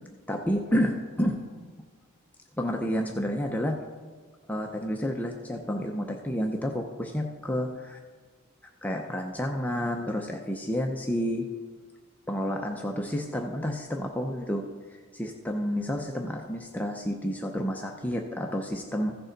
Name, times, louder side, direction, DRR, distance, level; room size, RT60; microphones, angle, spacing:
voice 1, 0.3-1.4 2.6-3.8 4.5-8.0 8.8-11.5 12.3-14.6 14.9-19.2, equal, 5° left, 2 dB, 0.5 m, -30 dB
15.0 x 6.7 x 3.9 m, 1.5 s
head